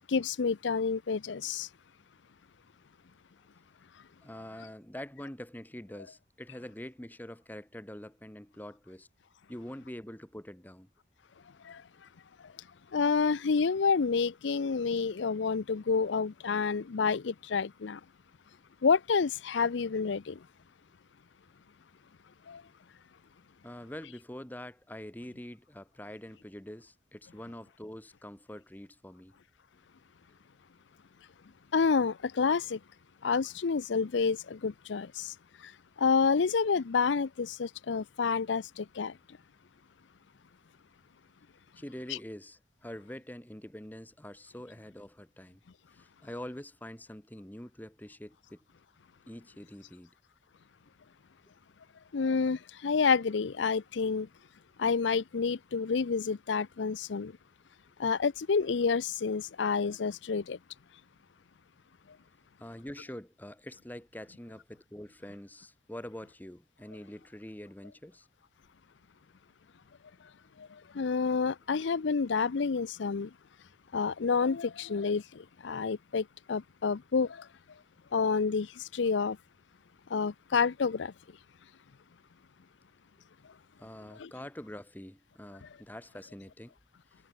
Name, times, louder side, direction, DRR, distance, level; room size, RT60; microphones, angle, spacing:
voice 1, 0.1-1.7 11.6-11.8 12.9-18.0 18.8-20.4 22.5-22.6 31.7-32.8 33.2-35.3 35.6-35.7 36.0-39.1 42.1-42.2 52.1-54.3 54.8-57.3 58.0-60.6 70.6-73.3 73.9-77.5 78.1-79.4 80.1-81.1 84.2-84.3 85.6-85.7, left 5 dB, 80° left, 0.5 m, -29 dB
voice 2, 4.2-9.1 9.5-10.9 23.6-29.3 41.8-45.6 45.9-48.6 49.3-50.1 62.6-68.3 83.8-86.7, left 1 dB, 10° left, 1.2 m, -45 dB
head